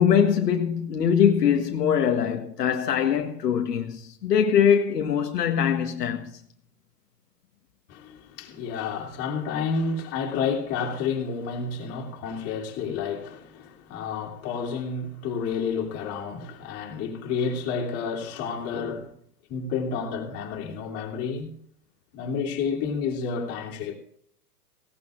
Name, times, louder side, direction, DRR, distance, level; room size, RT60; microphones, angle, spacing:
voice 1, 0.0-6.4, left 8 dB, 75° left, 1.7 m, -22 dB
voice 2, 7.9-19.1 19.5-21.5 22.1-24.0, left 5 dB, 30° left, 3.1 m, -30 dB
18.0 x 17.0 x 2.5 m
hypercardioid pair, 135°, 49 cm